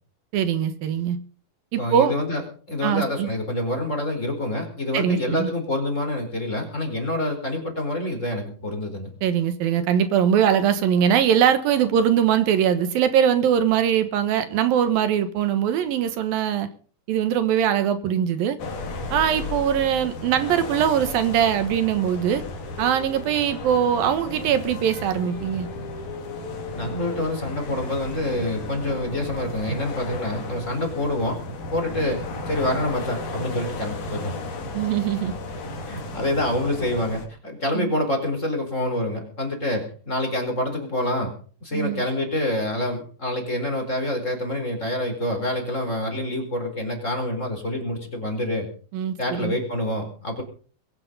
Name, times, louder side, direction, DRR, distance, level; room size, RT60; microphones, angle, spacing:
voice 1, 0.3-1.2 1.7-2.1 2.8-3.3 4.9-5.5 9.2-16.7 17.1-18.6 19.1-22.4 22.8-25.7 34.7-35.3 37.7-38.0 41.7-42.0 48.9-49.5, right 9 dB, 75° right, 11 dB, 3.0 m, -21 dB
voice 2, 1.8-2.4 2.7-9.1 26.7-31.4 31.7-34.4 35.9-41.3 41.6-48.7 49.2-50.4, left 1 dB, 20° left, 3 dB, 4.6 m, -27 dB
sound 1, 18.6-37.3, left 2 dB, 60° left, 4.1 m, -34 dB
Singing, 22.3-27.5, left 5 dB, 85° left, 6.2 m, -40 dB
22.0 x 9.9 x 5.4 m, 0.42 s
omnidirectional pair, 4.2 m